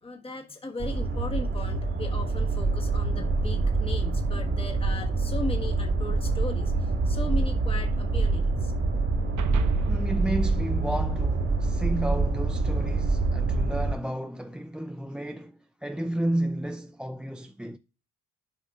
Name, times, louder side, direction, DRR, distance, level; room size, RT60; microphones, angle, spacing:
voice 1, 0.0-8.7, left 3 dB, 20° left, 1.4 m, -37 dB
sound 1, 0.8-13.9, right 3 dB, 40° right, 1.5 m, -26 dB
sound 2, 9.4-11.9, right 6 dB, 75° right, 1.0 m, -39 dB
voice 2, 9.9-17.8, right 1 dB, 5° right, 0.3 m, -32 dB
11.0 x 5.6 x 2.4 m
cardioid pair, 90°, 30 cm